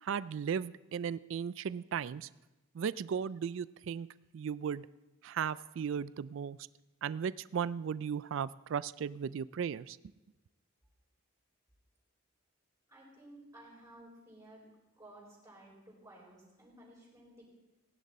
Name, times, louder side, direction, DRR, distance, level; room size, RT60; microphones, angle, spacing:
voice 1, 0.0-2.3 2.7-4.1 4.3-4.9 5.2-6.6 7.0-10.0, right 7 dB, 60° right, 18 dB, 0.3 m, -36 dB
voice 2, 12.9-14.6 14.9-17.4, right 1 dB, 15° right, -5 dB, 4.3 m, -55 dB
18.5 x 10.5 x 4.2 m, 1.0 s
head